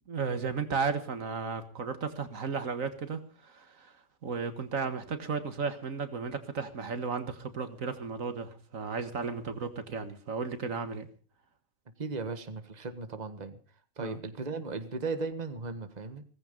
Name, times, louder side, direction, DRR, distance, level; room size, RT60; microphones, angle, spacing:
voice 1, 0.0-4.0 4.2-11.1 14.0-14.2, right 5 dB, 85° right, 10 dB, 2.1 m, -34 dB
voice 2, 12.0-13.6 14.0-16.2, right 4 dB, 35° right, 10 dB, 1.6 m, -36 dB
17.5 x 15.5 x 5.3 m, 0.38 s
omnidirectional pair, 1.4 m